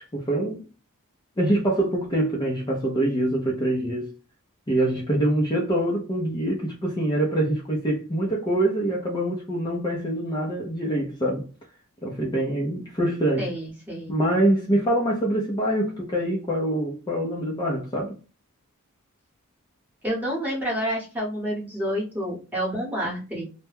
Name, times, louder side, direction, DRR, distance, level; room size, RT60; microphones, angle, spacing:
voice 1, 0.1-0.7 1.4-4.1 4.7-11.5 12.0-13.5 14.1-18.2, right 1 dB, 20° left, 0.5 m, -25 dB
voice 2, 13.4-14.1 20.0-23.4, equal, 5° right, 1.0 m, -29 dB
2.2 x 2.1 x 3.3 m
head